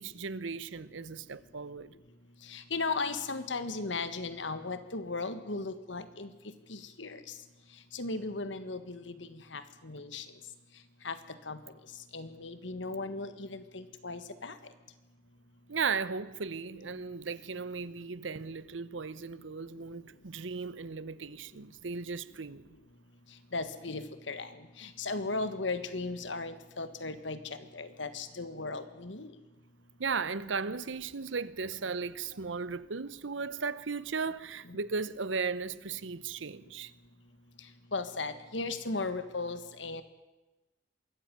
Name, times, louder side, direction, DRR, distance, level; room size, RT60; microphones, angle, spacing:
voice 1, 0.0-1.9 15.7-22.7 30.0-36.9, right 5 dB, 90° right, 0.9 m, -36 dB
voice 2, 2.5-6.3 6.7-7.2 7.9-10.2 11.0-11.2 11.5-11.6 12.1-14.5 23.5-24.5 24.8-27.4 27.7-29.3 37.9-40.0, left 3 dB, 80° left, 1.7 m, -36 dB
23.5 x 14.0 x 9.3 m
head